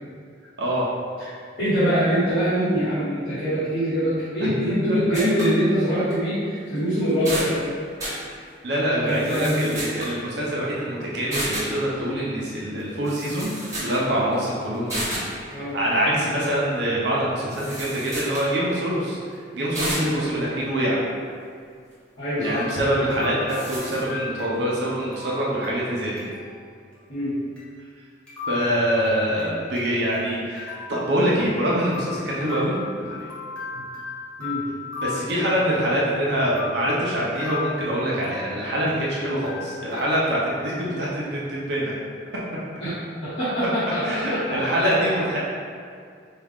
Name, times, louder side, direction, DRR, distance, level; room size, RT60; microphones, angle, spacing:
voice 1, 0.6-0.9 4.4-5.0 8.6-13.5 13.8-15.2 15.5-21.0 22.4-26.2 28.5-32.7 33.1-33.2 35.0-41.9 44.0-45.4, equal, 60° right, -6 dB, 0.7 m, -25 dB
voice 2, 1.6-7.6 9.0-9.7 15.5-15.8 16.1-16.3 19.9-20.2 22.2-22.7 27.1-27.3 33.7-33.8 34.4-34.6 39.2-39.4 42.8-45.0, equal, 75° left, -17 dB, 1.4 m, -24 dB
sound 1, 5.1-5.6 6.1-6.2 6.8-6.9 7.1-7.6 8.0-8.2 9.1-10.2 11.3-11.7 12.8-12.9 13.0-14.0 14.3-14.4 14.9-15.3 17.5-18.5 19.7-20.1 23.1-23.2 23.5-24.0, right 1 dB, 15° right, 1.1 m, -31 dB
sound 2, 22.4-26.6 26.9-27.0 27.6-27.7 28.3-30.2 30.6-31.6 31.9-36.1 36.5-39.1 39.4-40.2, left 5 dB, 5° left, 0.7 m, -37 dB
4.4 x 2.4 x 3.5 m, 2.2 s
head